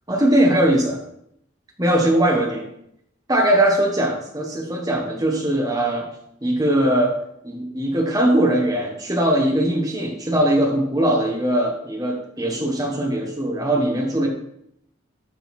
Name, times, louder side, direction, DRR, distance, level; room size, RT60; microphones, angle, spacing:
voice 1, 0.1-1.0 1.8-2.7 3.3-6.1 6.4-7.2 7.4-14.3, right 1 dB, 20° right, 0 dB, 1.5 m, -20 dB
12.0 x 4.1 x 4.4 m, 0.74 s
head